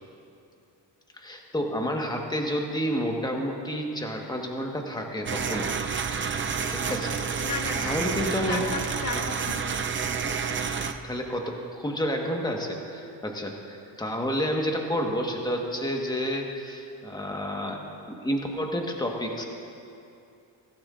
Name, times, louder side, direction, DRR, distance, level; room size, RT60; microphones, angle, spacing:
voice 1, 1.1-6.2 6.7-7.2 7.8-8.6 11.0-17.8 18.1-19.4, equal, 10° left, 1 dB, 1.4 m, -30 dB
sound 1, 5.3-10.9, right 6 dB, 25° right, 0.5 m, -29 dB
voice 2, 7.4-8.1 8.5-10.9, left 3 dB, 35° left, 0 dB, 1.9 m, -36 dB
16.5 x 14.5 x 2.5 m, 2.6 s
cardioid pair, 105°, 44 cm